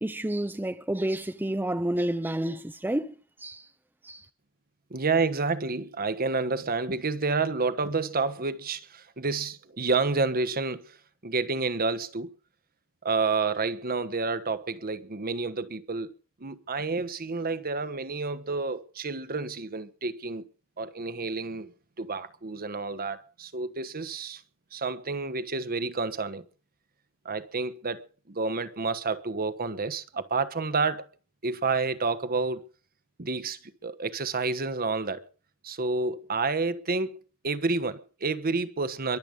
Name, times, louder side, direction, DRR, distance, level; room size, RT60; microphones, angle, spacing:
voice 1, 0.0-3.7 4.0-4.3, right 1 dB, 10° right, 0.6 m, -30 dB
voice 2, 4.9-11.0 11.2-12.3 13.0-16.1 16.4-20.4 20.8-24.4 24.7-26.4 27.2-31.1 31.4-32.7 33.2-35.3 35.6-39.2, right 4 dB, 45° right, 1.2 m, -29 dB
23.0 x 8.1 x 5.3 m
head